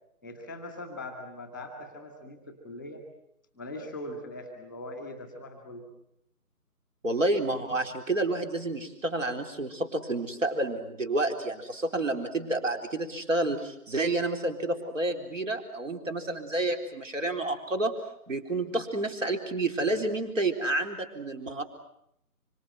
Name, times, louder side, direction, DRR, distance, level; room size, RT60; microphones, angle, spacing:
voice 1, 0.2-3.0 3.5-5.9, left 1 dB, ahead, 5 dB, 1.9 m, -41 dB
voice 2, 7.0-17.9 18.3-21.6, right 2 dB, 55° right, 5 dB, 4.2 m, -29 dB
25.5 x 25.0 x 7.8 m, 0.75 s
figure-of-eight pair, 160°, 45 cm